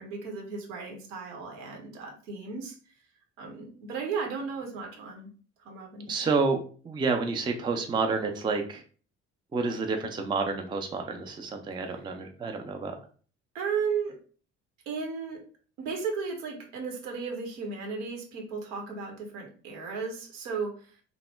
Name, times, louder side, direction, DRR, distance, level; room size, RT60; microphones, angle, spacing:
voice 1, 0.0-2.7 3.4-5.3 5.6-6.4 11.9-12.2 13.5-14.2 14.9-15.4 15.8-20.9, right 5 dB, 65° right, 1 dB, 0.9 m, -35 dB
voice 2, 6.1-6.6 6.8-8.8 9.5-13.0, right 4 dB, 15° right, 4 dB, 0.4 m, -29 dB
3.0 x 2.1 x 3.3 m, 0.41 s
figure-of-eight pair, 50°, 38 cm